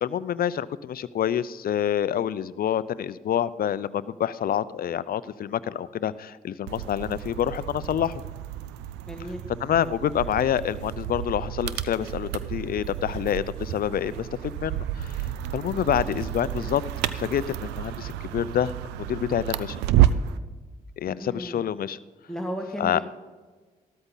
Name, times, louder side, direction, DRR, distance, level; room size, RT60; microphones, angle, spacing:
voice 1, 0.0-8.2 9.6-16.8 17.2-18.7 19.0-19.8 21.0-22.0 22.8-23.0, left 10 dB, 60° left, 17 dB, 0.6 m, -27 dB
sound 1, 6.7-20.4, right 12 dB, 85° right, 0.5 m, -30 dB
voice 2, 9.1-9.4 21.1-21.6 22.3-23.0, equal, 5° left, 0 dB, 1.8 m, -34 dB
13.5 x 13.0 x 4.0 m, 1.4 s
hypercardioid pair, 45°, 17 cm